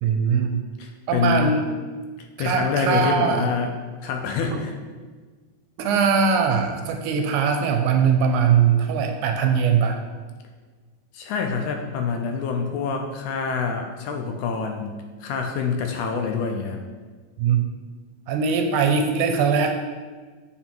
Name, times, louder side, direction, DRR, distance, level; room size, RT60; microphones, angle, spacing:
voice 1, 0.0-0.6 1.1-1.7 2.4-3.5 4.4-4.6 5.8-10.0 17.4-17.6 18.3-19.7, right 6 dB, 80° right, 4 dB, 1.9 m, -21 dB
voice 2, 0.8-1.5 2.4-3.7 4.0-4.7 11.1-16.8, left 5 dB, 80° left, 3 dB, 1.9 m, -26 dB
7.6 x 4.3 x 4.5 m, 1.4 s
omnidirectional pair, 3.7 m